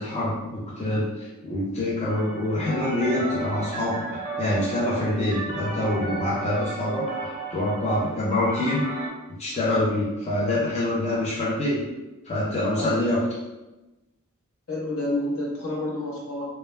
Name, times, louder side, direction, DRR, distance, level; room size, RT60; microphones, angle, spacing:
voice 1, 0.0-9.0 9.4-11.8 12.2-13.2, left 1 dB, 30° left, -7 dB, 0.4 m, -26 dB
sound 1, 2.1-9.1, right 3 dB, 25° right, 0.5 m, -34 dB
voice 2, 14.7-16.5, left 1 dB, 70° left, -5 dB, 0.8 m, -29 dB
2.2 x 2.0 x 3.1 m, 1.0 s
head